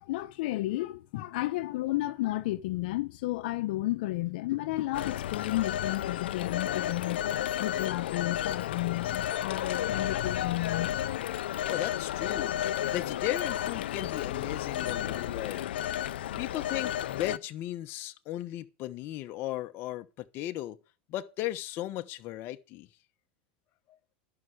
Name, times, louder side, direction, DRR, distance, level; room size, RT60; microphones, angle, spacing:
voice 1, 0.0-7.3 7.6-11.0, left 17 dB, 70° left, 1.0 m, -32 dB
Telephone, 4.9-17.4, left 11 dB, 90° left, 0.5 m, -32 dB
voice 2, 11.7-12.5 12.9-15.6 16.4-20.8 21.1-22.9 23.9-24.0, left 14 dB, 45° left, 1.0 m, -36 dB
12.0 x 5.8 x 7.8 m
supercardioid pair, 125°, 5 cm